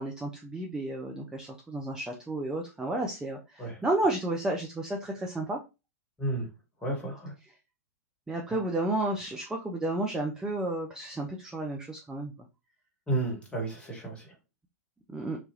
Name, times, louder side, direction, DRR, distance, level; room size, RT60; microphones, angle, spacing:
voice 1, 0.0-5.6 8.3-12.3 15.1-15.4, right 2 dB, 10° right, 0.4 m, -32 dB
voice 2, 6.8-7.3 13.1-14.3, right 2 dB, 10° left, 1.4 m, -32 dB
2.9 x 2.3 x 2.8 m
hypercardioid pair, 110°, 9 cm